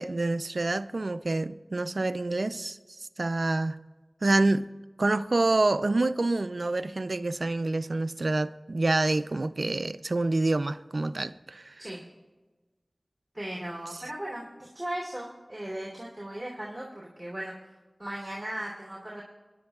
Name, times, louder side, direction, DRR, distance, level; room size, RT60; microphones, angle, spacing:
voice 1, 0.0-2.8 3.2-3.8 4.2-4.7 5.0-11.8, right 2 dB, 65° right, 0.4 m, -27 dB
voice 2, 13.3-17.7 18.0-19.2, right 1 dB, 15° right, 3.0 m, -37 dB
21.0 x 10.5 x 2.3 m
wide cardioid pair, 55°, 0 cm